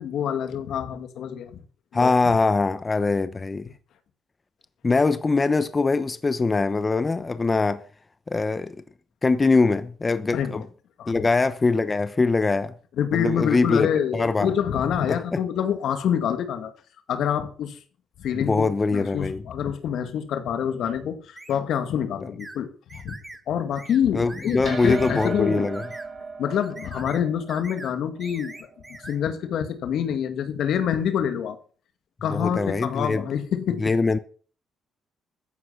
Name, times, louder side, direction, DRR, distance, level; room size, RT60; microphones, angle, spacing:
voice 1, 0.0-1.6 1.9-2.1 10.3-10.6 11.0-11.1 13.0-16.7 17.1-17.8 18.2-23.2 23.5-25.7 26.4-28.5 29.0-31.6 32.2-33.8, left 8 dB, 75° left, 2.1 m, -26 dB
voice 2, 1.9-3.7 4.8-7.8 8.3-8.8 9.2-10.6 11.1-12.7 13.1-14.5 15.1-15.4 18.3-19.4 24.1-25.8 32.3-33.2 33.8-34.2, left 3 dB, 25° left, 0.9 m, -22 dB
sound 1, 21.4-21.6 22.4-22.6 22.9-23.4 23.8-24.0 24.3-24.6 24.9-25.3 25.7-26.1 26.6-27.2 27.5-27.9 28.2-29.2, right 2 dB, 15° right, 2.1 m, -42 dB
sound 2, 24.6-29.3, right 4 dB, 40° right, 3.4 m, -37 dB
14.5 x 9.8 x 5.8 m
cardioid pair, 90°, 0 cm